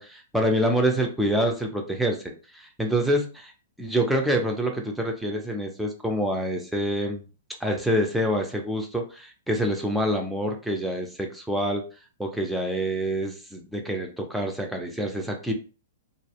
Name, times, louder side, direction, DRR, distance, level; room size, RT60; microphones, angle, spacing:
voice 1, 0.0-3.5 3.8-7.2 7.6-11.8 12.2-15.5, equal, ahead, 1 dB, 0.5 m, -26 dB
2.6 x 2.0 x 2.3 m, 0.35 s
hypercardioid pair, 115°, 0 cm